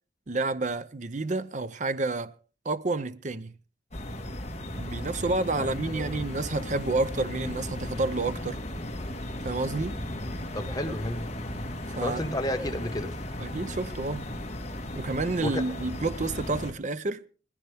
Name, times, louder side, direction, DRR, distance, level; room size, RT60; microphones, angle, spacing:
voice 1, 0.3-2.3 2.6-3.5 4.7-8.6 9.4-10.0 11.9-12.3 13.4-14.3 14.9-17.2, right 3 dB, 45° right, 0.6 m, -29 dB
sound 1, 3.9-16.7, left 1 dB, 40° left, 1.9 m, -36 dB
voice 2, 5.6-6.2 10.5-11.2 12.0-13.1 15.4-15.6, left 1 dB, 20° left, 1.5 m, -31 dB
20.0 x 14.5 x 3.5 m
head